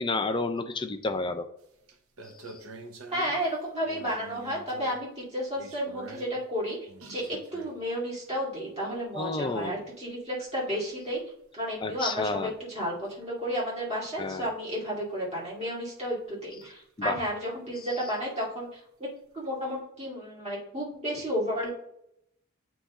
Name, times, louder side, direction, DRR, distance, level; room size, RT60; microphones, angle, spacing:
voice 1, 0.0-1.5 9.2-9.8 11.8-12.5 14.2-14.5 17.0-17.2, left 3 dB, 20° left, 8 dB, 0.4 m, -30 dB
sound 1, 1.6-1.7 1.9-3.5 3.8-5.1 5.6-6.5 6.9-8.1 8.8-9.0 10.7-10.9 12.5-12.6 13.1-13.3 15.7-15.8 16.1-16.2 16.6-17.0 19.4-19.5, right 2 dB, 70° right, 0.8 m, -46 dB
voice 2, 3.1-6.8 7.1-11.2 11.5-19.1 19.3-21.7, equal, 30° right, -5 dB, 2.4 m, -32 dB
8.4 x 3.1 x 3.7 m, 0.75 s
head